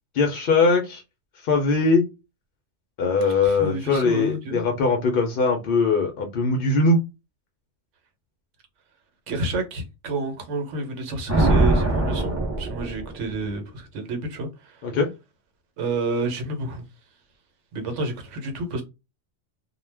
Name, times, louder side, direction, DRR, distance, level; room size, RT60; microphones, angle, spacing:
voice 1, 0.1-1.0 1.4-2.1 3.0-7.0 14.8-15.1, left 3 dB, 60° left, 0.6 m, -21 dB
voice 2, 3.2-4.6 9.3-14.8 15.8-16.8 17.7-18.8, right 2 dB, 75° right, 1.1 m, -30 dB
Thunder, 11.3-13.5, right 2 dB, 20° right, 0.5 m, -22 dB
2.3 x 2.1 x 3.3 m
omnidirectional pair, 1.2 m